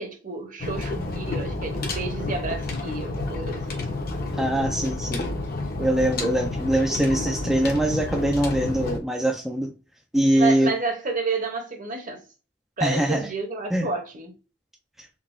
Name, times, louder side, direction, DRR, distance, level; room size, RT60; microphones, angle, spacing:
voice 1, 0.0-3.8 10.4-12.2 12.8-14.3, right 4 dB, 45° right, 0.8 m, -30 dB
sound 1, 0.6-9.0, left 2 dB, 50° left, 0.7 m, -30 dB
voice 2, 4.4-5.2 5.8-9.7 10.1-10.7 12.8-13.3 13.7-13.9, right 1 dB, ahead, 0.3 m, -23 dB
3.9 x 2.2 x 2.4 m
head